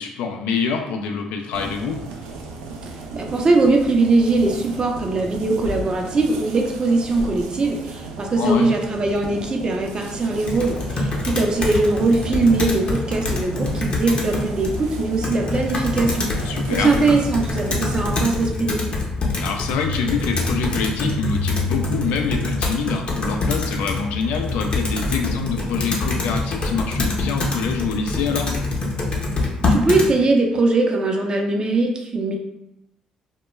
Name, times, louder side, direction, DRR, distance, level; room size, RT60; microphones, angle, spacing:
voice 1, 0.0-2.0 8.4-8.7 16.5-16.9 19.4-28.5, left 5 dB, 80° left, 4 dB, 0.3 m, -25 dB
sound 1, 1.5-18.3, right 3 dB, 90° right, 0.4 m, -35 dB
voice 2, 2.8-19.0 29.7-32.4, right 3 dB, 40° right, 1 dB, 0.5 m, -21 dB
Computer keyboard, 10.4-30.1, left 2 dB, 45° left, 0.7 m, -25 dB
2.2 x 2.2 x 3.0 m, 0.87 s
supercardioid pair, 60°, 2 cm